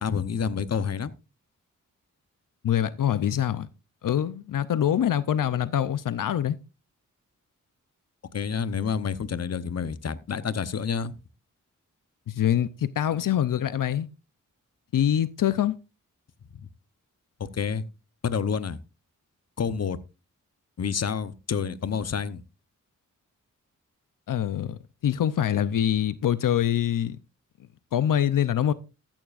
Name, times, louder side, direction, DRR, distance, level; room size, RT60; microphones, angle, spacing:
voice 1, 0.0-1.1 8.3-11.1 16.5-16.7 17.4-17.8 18.2-18.8 19.6-20.0 20.8-22.4, left 6 dB, 55° left, 0.9 m, -28 dB
voice 2, 2.6-3.7 4.0-6.6 12.3-14.1 14.9-15.8 24.3-27.2 27.9-28.7, left 10 dB, 80° left, 0.6 m, -24 dB
14.0 x 13.5 x 2.5 m
wide cardioid pair, 95°, 32 cm